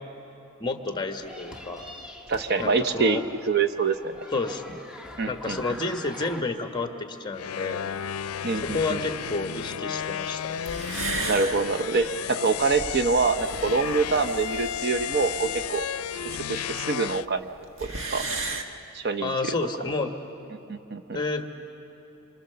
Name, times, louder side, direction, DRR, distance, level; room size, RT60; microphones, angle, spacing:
voice 1, 0.6-1.8 2.6-3.2 4.3-4.8 5.3-7.8 8.5-10.6 19.2-20.1 21.1-21.5, left 3 dB, 20° left, 5 dB, 1.3 m, -30 dB
sound 1, 1.2-6.4, left 1 dB, 5° right, 1.1 m, -43 dB
voice 2, 2.3-4.3 5.2-5.6 8.4-9.0 11.3-15.9 16.2-17.5 17.8-18.2 18.9-19.3 20.7-21.0, right 4 dB, 50° right, 8 dB, 0.8 m, -25 dB
sound 2, 7.4-17.3, left 9 dB, 90° left, 0.5 m, -33 dB
sound 3, 10.4-10.5 10.7-16.7 16.9-17.0 17.2-17.3 17.6-18.6, right 2 dB, 65° right, 1.5 m, -35 dB
28.0 x 25.0 x 6.8 m, 3.0 s
head